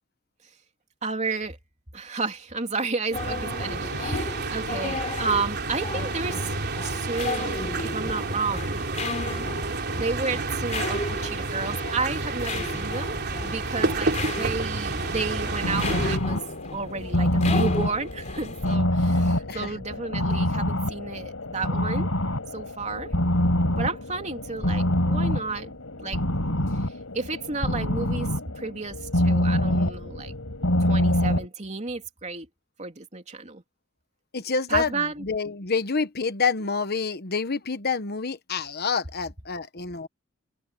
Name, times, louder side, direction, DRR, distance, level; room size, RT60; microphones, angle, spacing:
voice 1, 1.0-1.6 1.9-6.6 6.8-8.8 9.9-13.1 13.4-16.4 16.7-22.1 22.5-23.1 23.8-25.7 26.0-26.2 27.1-28.3 28.6-30.3 30.8-32.5 32.8-33.6 34.7-35.2, right 4 dB, 35° right, 3.1 m, -31 dB
sound 1, 3.1-18.8, left 3 dB, 35° left, 3.3 m, -35 dB
sound 2, 3.1-16.2, right 3 dB, 50° right, 3.5 m, -30 dB
sound 3, 15.2-31.5, left 1 dB, 85° left, 4.4 m, -26 dB
voice 2, 34.3-40.1, left 5 dB, 50° left, 1.2 m, -28 dB
head